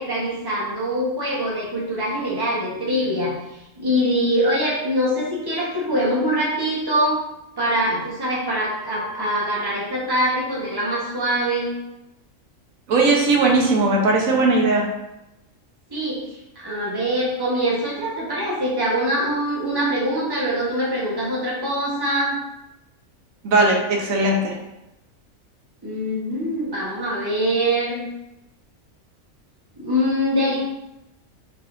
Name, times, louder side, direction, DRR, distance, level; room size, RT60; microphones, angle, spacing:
voice 1, 0.0-3.4 3.8-7.2 7.6-11.7 15.9-16.2 16.5-22.4 25.8-28.0 29.8-30.6, equal, 20° right, -5 dB, 1.2 m, -23 dB
voice 2, 12.9-14.8 23.4-24.5, right 2 dB, 85° right, 0 dB, 1.2 m, -18 dB
4.6 x 4.2 x 2.6 m, 0.92 s
omnidirectional pair, 1.4 m